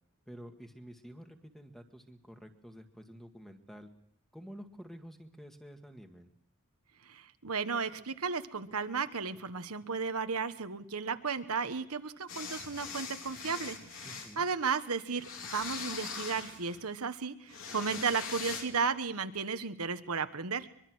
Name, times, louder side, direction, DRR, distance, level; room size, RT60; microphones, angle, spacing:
voice 1, 0.3-3.9 4.3-6.3 14.0-14.5, equal, ahead, 5 dB, 1.8 m, -50 dB
voice 2, 7.0-20.7, right 5 dB, 85° right, 10 dB, 1.3 m, -34 dB
sound 1, 12.3-14.3 15.1-16.8 17.5-18.6, left 5 dB, 60° left, 3.9 m, -42 dB
23.5 x 23.5 x 6.3 m, 0.74 s
head